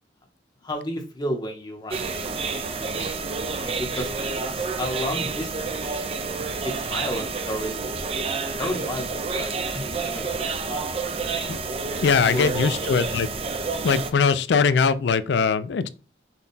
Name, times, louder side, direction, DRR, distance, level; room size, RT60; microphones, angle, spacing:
voice 1, 0.6-3.1 3.5-6.1 6.6-7.8 8.6-10.9 11.9-12.6, equal, 25° left, 0.9 m, -33 dB
sound 1, 1.9-14.1, right 4 dB, 30° right, 0.4 m, -29 dB
voice 2, 12.0-13.3 13.8-15.9, left 5 dB, 70° left, 0.4 m, -21 dB
5.6 x 2.3 x 4.0 m
head